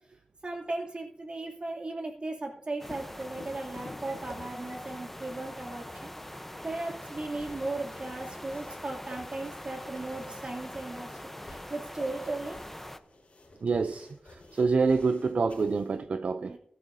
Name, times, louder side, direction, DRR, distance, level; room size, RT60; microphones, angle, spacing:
voice 1, 0.4-6.1 6.6-11.1 11.4-12.6 16.4-16.6, right 2 dB, 50° right, 2.7 m, -37 dB
Thunder, 2.8-10.5 14.1-14.2 14.7-15.6, left 2 dB, 50° left, 1.5 m, -52 dB
sound 1, 2.8-13.0, left 1 dB, 10° left, 0.8 m, -43 dB
sound 2, 7.0-16.0, left 2 dB, 70° left, 4.2 m, -54 dB
voice 2, 13.6-16.6, right 4 dB, 75° right, 0.4 m, -27 dB
15.5 x 12.0 x 2.7 m
wide cardioid pair, 60°, 2 cm